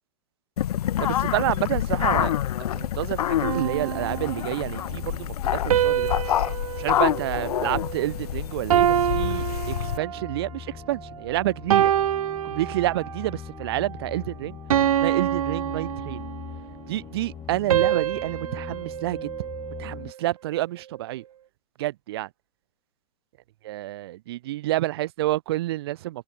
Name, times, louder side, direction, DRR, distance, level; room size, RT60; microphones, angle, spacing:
sound 1, 0.6-10.0, left 11 dB, 85° left, 0.7 m, -27 dB
voice 1, 1.0-2.3 2.6-6.1 6.8-11.9 12.4-14.6 15.0-16.2 16.9-19.3 19.8-21.2 21.8-22.3 23.6-26.2, right 16 dB, 40° right, 2.4 m, -29 dB
sound 2, 1.6-20.1, left 9 dB, 15° left, 5.1 m, -43 dB
sound 3, 3.4-4.7 5.7-8.2 8.7-10.4 11.0-11.2 11.7-13.2 13.7-14.0 14.7-16.6 17.7-20.1, right 10 dB, 65° right, 3.3 m, -26 dB
supercardioid pair, 180°, 19 cm